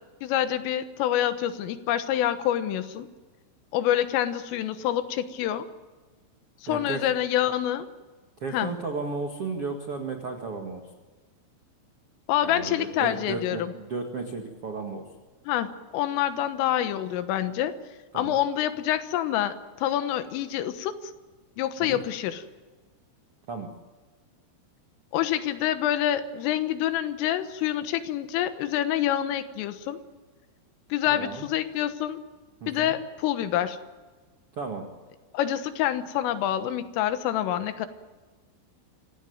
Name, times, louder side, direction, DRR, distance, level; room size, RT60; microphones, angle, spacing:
voice 1, 0.2-3.1 3.7-5.7 6.6-7.9 8.5-8.7 12.3-13.7 15.5-15.7 15.9-17.8 18.1-21.1 21.6-22.4 25.1-30.0 30.9-32.2 32.7-33.8 35.3-37.9, left 11 dB, 80° left, 10 dB, 3.8 m, -27 dB
voice 2, 6.7-7.0 8.4-10.8 12.4-15.0 18.1-18.4 21.8-22.0 23.5-23.7 31.1-31.5 32.6-32.9 34.5-34.8, right 4 dB, 60° right, 3 dB, 1.4 m, -34 dB
26.0 x 16.5 x 9.3 m, 1.3 s
omnidirectional pair, 5.8 m